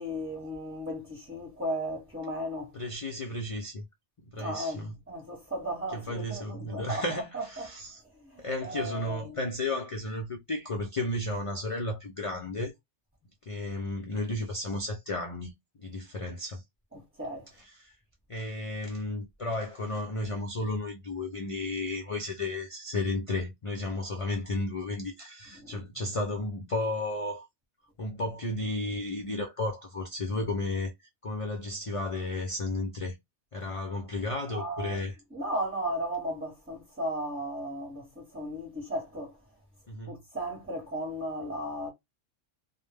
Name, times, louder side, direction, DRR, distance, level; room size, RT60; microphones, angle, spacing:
voice 1, 0.0-2.8 4.4-4.8 5.1-7.7 8.1-9.4 16.9-17.5 25.6-25.8 34.5-35.0 35.3-39.3 40.1-41.9, right 1 dB, 10° right, 0.8 m, -35 dB
voice 2, 2.7-3.8 4.3-4.9 5.9-8.0 8.4-12.7 13.4-15.5 15.8-16.6 17.6-17.9 18.3-27.5 28.0-30.9 31.2-33.1 33.5-35.2 39.9-40.2, left 2 dB, 55° left, 0.3 m, -33 dB
2.1 x 2.1 x 3.3 m
omnidirectional pair, 1.2 m